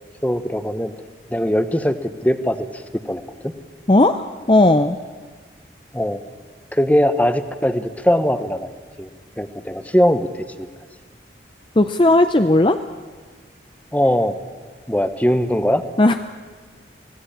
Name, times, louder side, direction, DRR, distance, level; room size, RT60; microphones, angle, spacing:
voice 1, 0.2-0.9 1.3-3.5 5.9-6.2 6.7-8.7 9.0-9.1 9.4-10.3 10.6-10.7 13.9-14.4 14.9-15.8, equal, 10° left, 10 dB, 1.0 m, -20 dB
voice 2, 3.9-5.0 11.8-12.8 16.0-16.2, left 2 dB, 25° left, 8 dB, 0.6 m, -15 dB
25.0 x 17.5 x 8.7 m, 1.5 s
head